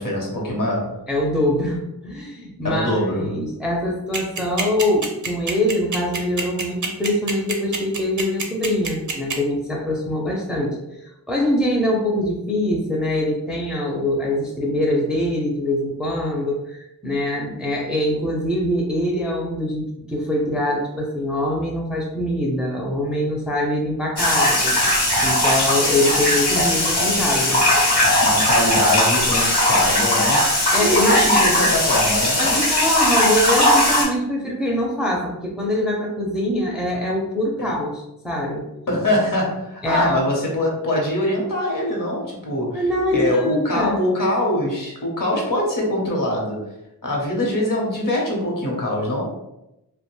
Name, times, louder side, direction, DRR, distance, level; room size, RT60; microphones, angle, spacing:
voice 1, 0.0-1.0 2.6-3.3 28.2-30.4 30.8-32.7 38.9-42.8 43.1-46.6 47.0-49.3, left 1 dB, 55° left, -2 dB, 0.9 m, -23 dB
voice 2, 1.1-24.8 25.2-27.9 30.7-31.3 32.4-38.7 39.8-40.2 42.7-44.0, left 1 dB, ahead, -1 dB, 0.5 m, -23 dB
sound 1, 4.1-9.3, right 4 dB, 50° right, 0.6 m, -25 dB
sound 2, 24.2-34.0, left 1 dB, 80° left, 1.1 m, -18 dB
2.4 x 2.2 x 3.1 m, 0.90 s
wide cardioid pair, 75°, 39 cm